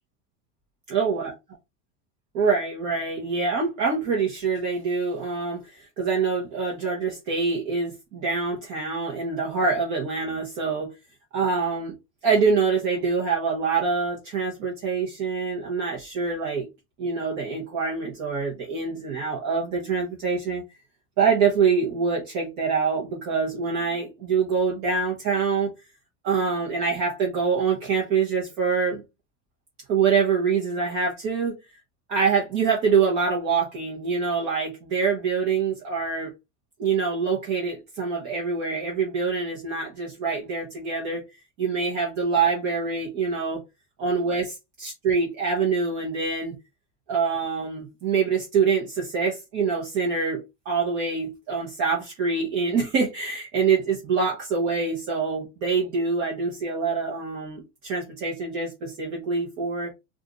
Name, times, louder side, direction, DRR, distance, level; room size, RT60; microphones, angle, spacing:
voice 1, 0.9-1.3 2.3-10.9 11.3-11.9 12.2-16.7 17.0-20.6 21.2-25.7 26.2-29.0 29.9-31.5 32.1-36.3 36.8-41.2 41.6-43.6 44.0-46.6 47.1-59.9, right 5 dB, 45° right, 0.9 m, -25 dB
2.7 x 2.5 x 3.7 m
cardioid pair, 170°, 39 cm